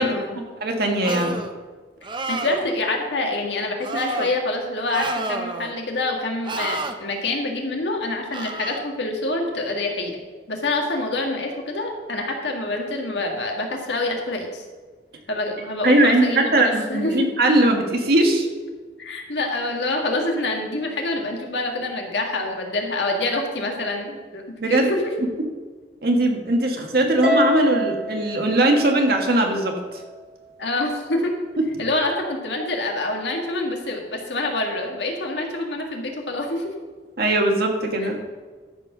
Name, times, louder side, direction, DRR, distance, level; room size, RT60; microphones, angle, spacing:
voice 1, 0.0-0.4 2.3-10.2 10.5-14.6 15.3-17.2 19.0-24.4 24.7-25.0 30.6-31.3 31.8-36.7 38.0-38.1, left 2 dB, 80° left, 2 dB, 1.8 m, -26 dB
voice 2, 0.6-1.4 15.8-18.5 24.6-24.9 26.0-30.0 31.6-31.7 37.2-38.2, right 1 dB, 60° right, 2 dB, 1.6 m, -20 dB
sound 1, 1.0-1.5 2.0-2.7 3.8-4.3 4.9-5.7 6.4-6.9 8.3-8.8, right 2 dB, 25° right, 0.6 m, -29 dB
Harp, 27.2-29.7, left 1 dB, 5° right, 1.0 m, -26 dB
13.5 x 4.5 x 6.1 m, 1.4 s
head